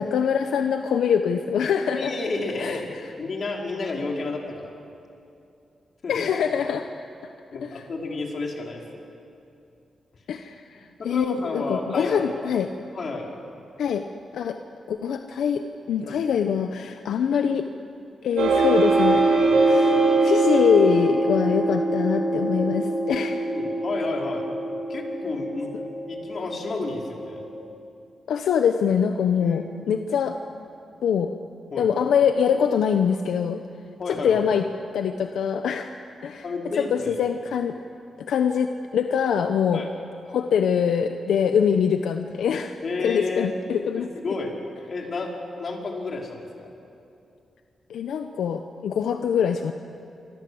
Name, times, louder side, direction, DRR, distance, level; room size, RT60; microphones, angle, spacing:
voice 1, 0.0-2.1 2.6-3.1 6.1-6.9 7.2-7.9 10.3-12.7 13.8-14.1 14.3-14.6 14.9-17.7 18.2-19.2 19.6-23.4 28.3-30.4 31.0-31.3 31.8-33.6 34.1-34.6 34.9-35.9 36.2-36.4 36.8-37.7 38.2-39.8 40.3-44.1 47.9-49.7, left 7 dB, 90° left, 6 dB, 1.0 m, -24 dB
voice 2, 1.9-2.9 3.2-4.7 6.0-6.3 7.5-9.0 11.0-12.5 13.0-13.3 16.0-16.2 19.5-19.7 20.1-20.2 23.1-24.5 24.9-25.7 26.1-27.4 29.4-29.7 31.7-31.9 34.0-34.5 36.4-37.2 39.7-39.9 42.8-43.5 43.9-44.5 44.9-46.7, left 3 dB, 55° left, 0 dB, 5.1 m, -31 dB
sound 1, 18.4-27.6, right 2 dB, 90° right, 5.9 m, -23 dB
27.5 x 25.5 x 8.0 m, 2.7 s
cardioid pair, 90°, 0 cm